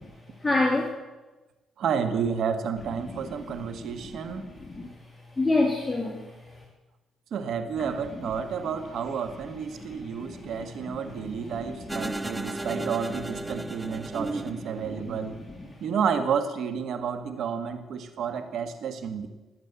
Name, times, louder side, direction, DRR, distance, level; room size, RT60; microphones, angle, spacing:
voice 1, 0.4-0.9 3.0-4.9 5.4-6.6 7.8-8.3 9.7-12.7 13.5-14.4 14.8-15.7, left 2 dB, 15° left, -1 dB, 2.7 m, -31 dB
voice 2, 1.8-4.4 7.3-15.4 15.8-19.3, right 7 dB, 70° right, 9 dB, 1.6 m, -30 dB
sound 1, 11.9-15.2, right 2 dB, 10° right, 0.7 m, -34 dB
19.0 x 8.4 x 7.1 m, 1.1 s
cardioid pair, 90°, 0 cm